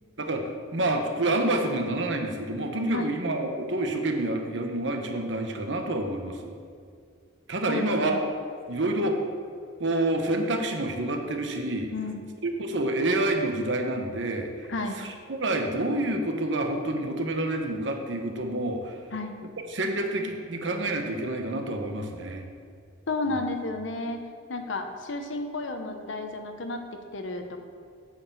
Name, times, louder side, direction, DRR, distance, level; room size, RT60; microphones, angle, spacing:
voice 1, 0.2-6.5 7.5-8.2 8.7-9.2 9.8-11.9 12.4-14.7 15.0-19.0 19.7-22.4, right 1 dB, 65° right, 4 dB, 1.0 m, -28 dB
voice 2, 7.7-8.2 11.9-12.2 14.7-15.0 19.1-19.3 23.1-24.2 24.5-26.8 27.1-27.6, left 2 dB, 70° left, 6 dB, 0.9 m, -32 dB
8.6 x 5.0 x 7.2 m, 2.3 s
head